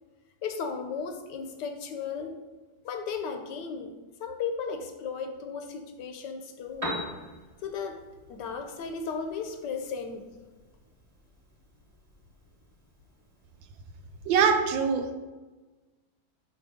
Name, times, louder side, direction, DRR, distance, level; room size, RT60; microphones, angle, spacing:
voice 1, 0.4-2.4 2.8-7.0 7.6-8.0 8.3-10.2, left 5 dB, 75° left, 5 dB, 1.2 m, -35 dB
Piano, 6.6-14.6, equal, 20° right, 1.1 m, -44 dB
voice 2, 14.3-15.1, right 6 dB, 80° right, 7 dB, 1.4 m, -23 dB
5.2 x 4.4 x 4.9 m, 1.2 s
omnidirectional pair, 2.1 m